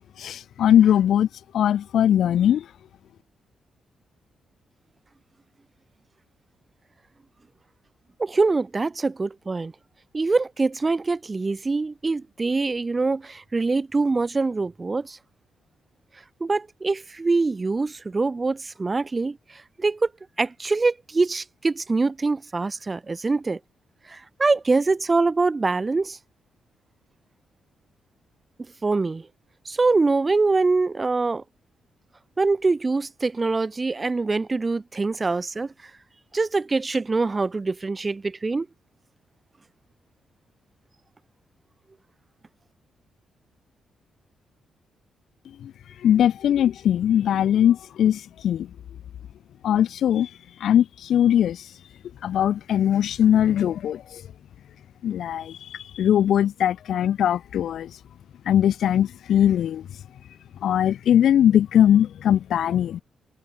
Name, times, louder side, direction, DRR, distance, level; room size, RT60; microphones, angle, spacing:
voice 1, 0.2-1.3 1.5-2.6 45.6-45.7 46.0-48.7 49.6-50.3 50.6-51.7 52.2-54.2 55.0-57.9 58.4-59.9 60.6-63.0, left 10 dB, 75° left, 1.5 m, -20 dB
voice 2, 8.2-9.7 10.1-15.2 16.4-19.4 19.8-20.1 20.4-23.6 24.1-26.2 28.8-29.3 29.6-31.4 32.4-35.7 36.3-38.7, right 3 dB, 35° right, 3.1 m, -24 dB
supercardioid pair, 50°, 0 cm